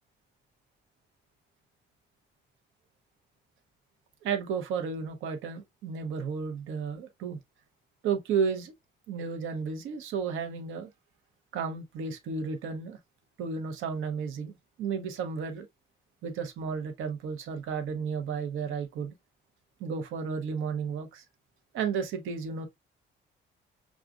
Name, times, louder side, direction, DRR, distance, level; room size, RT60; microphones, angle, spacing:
voice 1, 4.2-7.4 8.0-8.7 9.1-10.9 11.5-13.0 13.4-15.7 16.2-19.1 19.8-21.2 21.7-22.7, right 6 dB, 90° right, 0.8 m, -33 dB
6.0 x 2.4 x 2.4 m
cardioid pair, 90°, 20 cm